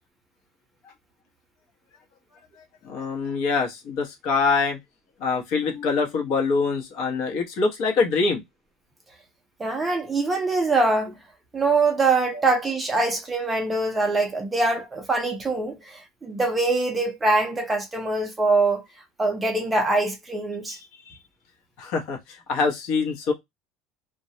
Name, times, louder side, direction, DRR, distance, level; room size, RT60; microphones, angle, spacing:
voice 1, 2.6-4.8 5.2-8.4 12.3-12.4 21.0-21.2 21.8-23.3, left 4 dB, 55° left, 0.8 m, -25 dB
voice 2, 9.6-11.2 11.5-18.8 19.2-20.8, right 3 dB, 10° right, 0.5 m, -23 dB
2.3 x 2.0 x 2.7 m
cardioid pair, 165°, 0 cm